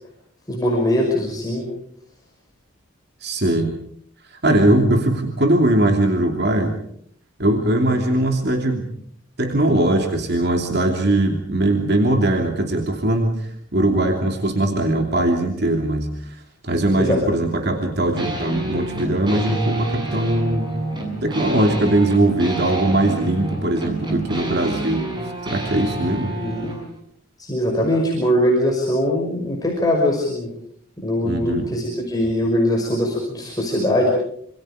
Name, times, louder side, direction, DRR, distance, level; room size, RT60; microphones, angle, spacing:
voice 1, 0.5-1.7 16.9-17.2 26.4-26.7 27.4-30.5 31.0-34.1, left 1 dB, 20° left, -2 dB, 5.6 m, -21 dB
voice 2, 3.2-3.7 4.4-6.8 7.4-8.9 9.4-20.7 21.2-25.1 25.4-26.4 31.2-31.7, right 1 dB, 50° right, 3 dB, 3.0 m, -20 dB
sound 1, 18.1-26.8, right 2 dB, 20° right, 7.0 m, -29 dB
27.0 x 27.0 x 5.1 m, 0.68 s
head